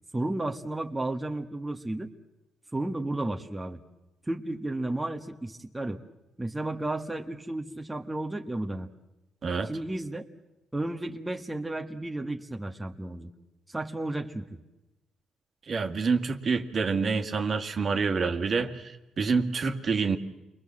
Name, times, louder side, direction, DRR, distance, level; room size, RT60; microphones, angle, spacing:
voice 1, 0.1-2.1 2.7-3.8 4.3-6.0 6.4-8.9 9.6-10.2 10.7-13.3 13.7-14.6, right 2 dB, 10° right, 3 dB, 1.7 m, -33 dB
voice 2, 15.7-20.2, right 4 dB, 45° right, 6 dB, 2.1 m, -27 dB
29.5 x 22.0 x 7.6 m, 0.99 s
cardioid pair, 90°, 0 cm